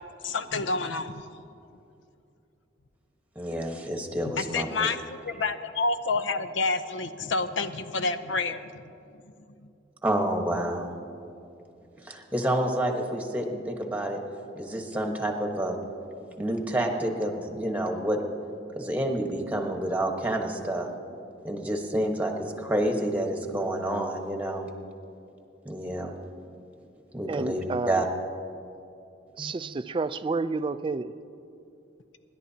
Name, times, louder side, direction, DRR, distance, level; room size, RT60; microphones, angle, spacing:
voice 1, 0.2-1.2 4.4-5.0 5.3-8.8, left 3 dB, 85° left, 10 dB, 0.7 m, -28 dB
voice 2, 3.3-4.9 10.0-10.9 11.9-14.2 14.5-15.8 16.4-18.2 18.7-20.9 21.4-24.7 25.6-26.1 27.1-28.1 29.4-29.5, right 1 dB, 10° right, 2 dB, 1.2 m, -29 dB
voice 3, 27.3-28.0 29.4-31.1, right 3 dB, 25° right, 13 dB, 0.3 m, -30 dB
26.5 x 11.0 x 2.8 m, 2.6 s
head